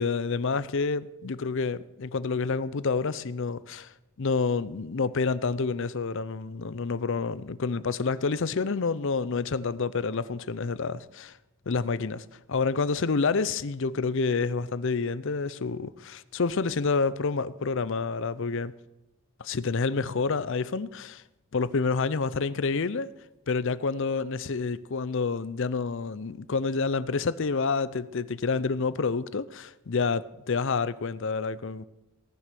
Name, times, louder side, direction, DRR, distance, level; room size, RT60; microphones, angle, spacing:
voice 1, 0.0-3.9 4.2-11.4 11.7-18.7 19.4-21.2 21.5-23.1 23.5-31.8, left 4 dB, 60° left, 0.6 m, -28 dB
17.5 x 9.9 x 6.8 m
head